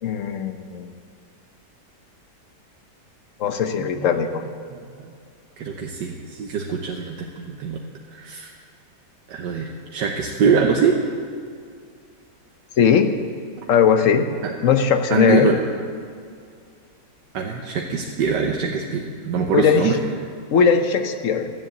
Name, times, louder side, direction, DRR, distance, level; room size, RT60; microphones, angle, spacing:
voice 1, 0.0-0.9 3.4-4.5 12.8-13.1 13.7-14.3 14.6-15.5 19.5-19.8 20.5-21.5, left 7 dB, 60° left, 8 dB, 0.9 m, -19 dB
voice 2, 3.8-4.1 5.0-5.1 5.6-7.8 8.1-8.5 9.3-11.0 14.4-14.5 15.1-15.6 17.3-20.0, right 6 dB, 80° right, 1 dB, 1.5 m, -23 dB
12.5 x 7.5 x 8.1 m, 2.2 s
omnidirectional pair, 1.9 m